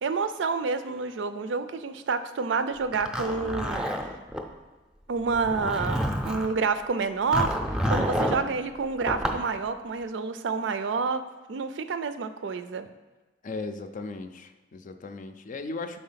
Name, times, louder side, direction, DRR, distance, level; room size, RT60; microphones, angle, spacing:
voice 1, 0.0-3.9 5.1-7.6 7.9-11.2 11.5-12.9, right 4 dB, 85° right, 10 dB, 0.4 m, -28 dB
Zipper (clothing), 2.9-4.4 5.3-6.5 7.3-8.4 9.0-9.4, equal, 5° right, 0.5 m, -28 dB
voice 2, 13.4-16.0, left 3 dB, 45° left, 8 dB, 0.4 m, -37 dB
5.6 x 4.2 x 5.6 m, 1.2 s
head